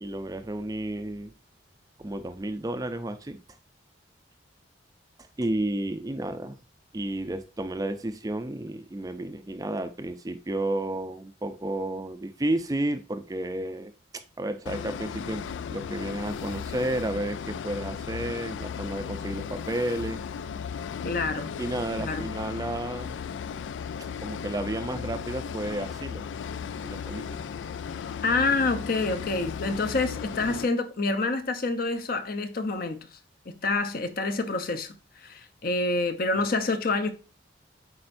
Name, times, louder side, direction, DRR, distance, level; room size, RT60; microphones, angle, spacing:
voice 1, 0.0-1.3 2.0-3.4 5.4-6.6 6.9-13.9 14.4-15.4 15.7-20.2 21.6-23.2 24.2-26.2 26.8-27.2 36.4-36.5, right 1 dB, 20° right, 0.5 m, -32 dB
sound 1, 14.7-30.7, left 7 dB, 75° left, 0.3 m, -36 dB
voice 2, 21.0-21.5 22.0-22.3 28.2-33.0 33.5-35.0 35.2-37.1, left 3 dB, 50° left, 0.7 m, -27 dB
8.6 x 4.3 x 2.6 m
head